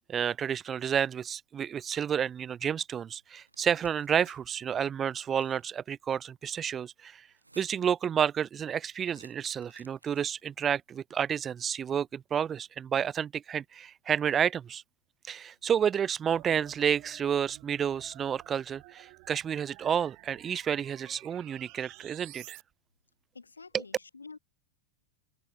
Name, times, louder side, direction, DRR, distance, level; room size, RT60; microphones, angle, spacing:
voice 1, 0.1-7.3 7.6-14.8 15.3-22.6 23.7-23.8, right 8 dB, 25° right, 0.5 m, -30 dB
sound 1, 3.4-4.4 5.2-5.7 7.3-8.0 9.0-10.4, right 2 dB, 85° right, 3.3 m, -58 dB
sound 2, 16.3-22.6, right 36 dB, 45° right, 2.2 m, -52 dB
voice 2, 23.3-24.4, left 4 dB, 75° left, 3.2 m, -48 dB
figure-of-eight pair, 90°, 0 cm